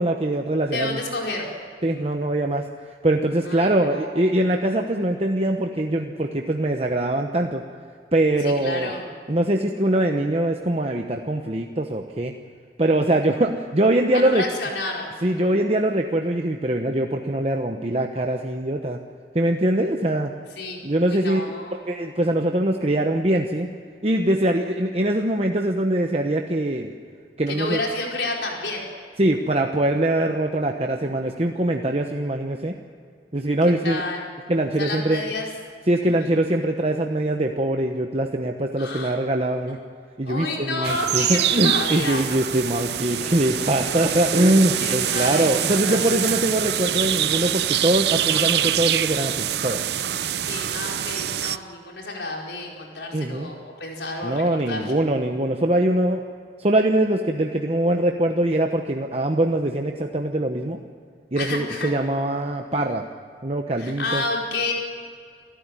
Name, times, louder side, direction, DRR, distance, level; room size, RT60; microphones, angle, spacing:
voice 1, 0.0-1.0 1.8-7.6 8.1-8.9 9.3-12.3 12.8-14.4 15.2-19.0 19.3-20.3 20.8-23.7 24.0-26.9 27.4-27.8 29.2-32.7 33.3-34.0 34.5-35.2 35.9-39.8 40.2-49.8 53.1-53.5 54.2-56.2 56.6-60.8 61.3-63.0 63.4-64.2, right 1 dB, 35° right, 3 dB, 1.0 m, -22 dB
voice 2, 0.7-1.5 3.4-4.1 8.4-9.1 14.1-15.1 20.6-21.7 27.5-28.8 33.8-34.2 34.8-35.5 36.1-36.3 38.8-39.2 40.3-42.2 44.0-44.2 44.8-45.5 45.8-46.4 50.4-54.9 61.4-61.9 63.8-64.7, left 2 dB, 80° left, -1 dB, 4.8 m, -30 dB
sound 1, 40.8-51.6, right 11 dB, 70° right, 0.6 m, -25 dB
27.5 x 14.0 x 9.7 m, 2.2 s
head